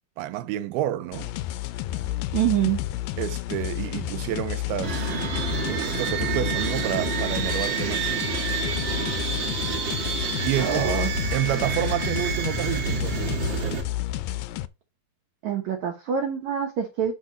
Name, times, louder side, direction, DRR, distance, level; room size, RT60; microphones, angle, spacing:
voice 1, 0.2-1.3 3.2-5.2 5.5-8.1 10.4-13.4, right 13 dB, 85° right, 2.6 m, -29 dB
sound 1, 1.1-14.7, left 14 dB, 85° left, 1.9 m, -31 dB
voice 2, 2.3-2.8 10.6-11.1 15.4-17.1, right 9 dB, 70° right, 1.8 m, -25 dB
sound 2, 4.8-13.8, right 5 dB, 40° right, 1.9 m, -28 dB
11.5 x 4.2 x 3.9 m
omnidirectional pair, 4.5 m